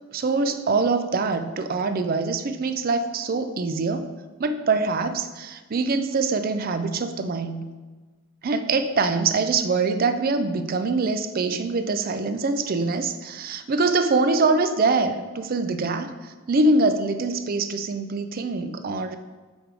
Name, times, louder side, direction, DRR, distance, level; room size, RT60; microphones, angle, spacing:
voice 1, 0.1-4.1 4.4-7.7 8.4-19.2, right 3 dB, 45° right, 9 dB, 0.4 m, -24 dB
7.4 x 3.6 x 4.6 m, 1.3 s
head